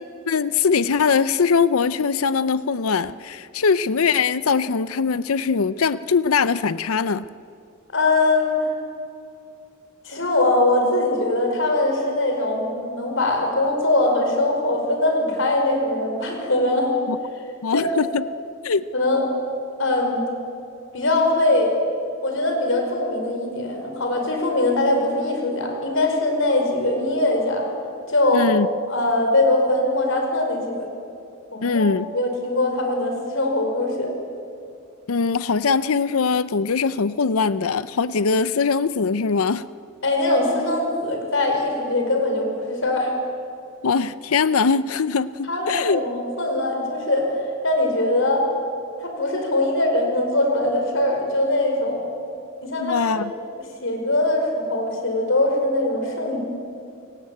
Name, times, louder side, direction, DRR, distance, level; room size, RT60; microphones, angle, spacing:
voice 1, 0.3-7.2 17.1-17.2 17.6-18.2 18.6-18.8 28.3-28.7 31.6-32.1 35.1-39.7 43.8-46.0 52.8-53.3, left 5 dB, 80° left, 16 dB, 0.6 m, -21 dB
voice 2, 7.9-8.7 10.0-16.9 17.7-17.9 18.9-19.2 19.8-20.3 20.9-21.7 22.2-27.7 28.1-28.5 28.9-30.8 31.5-31.9 32.1-34.1 40.0-43.1 45.5-48.5 49.0-52.1 52.6-53.1 53.8-56.4, left 2 dB, 60° left, 3 dB, 5.4 m, -22 dB
28.5 x 17.5 x 8.6 m, 2.5 s
head